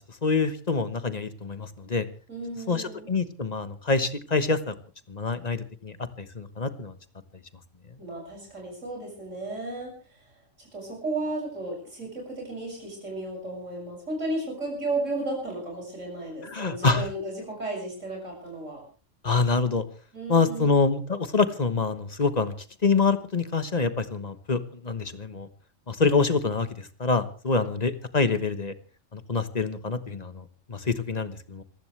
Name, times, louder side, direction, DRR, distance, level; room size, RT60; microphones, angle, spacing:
voice 1, 0.2-2.1 2.7-4.7 5.1-6.9 16.5-17.1 19.2-19.8 20.3-22.5 22.8-25.5 25.9-28.7 29.1-31.6, left 4 dB, 35° left, 11 dB, 1.3 m, -26 dB
voice 2, 2.3-3.1 8.0-10.2 10.6-18.8 20.1-20.8, right 2 dB, 80° right, -1 dB, 7.4 m, -34 dB
27.0 x 15.0 x 3.3 m, 0.37 s
omnidirectional pair, 1.3 m